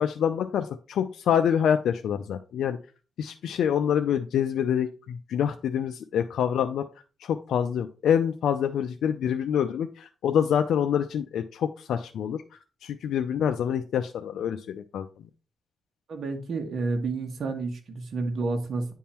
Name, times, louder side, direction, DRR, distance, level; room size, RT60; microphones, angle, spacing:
voice 1, 0.0-2.8 3.2-6.9 7.2-12.4 12.8-15.1, left 8 dB, 90° left, 0.5 m, -26 dB
voice 2, 16.1-18.9, right 3 dB, 70° right, 1.5 m, -30 dB
9.5 x 3.7 x 4.3 m
cardioid pair, 85°, 0 cm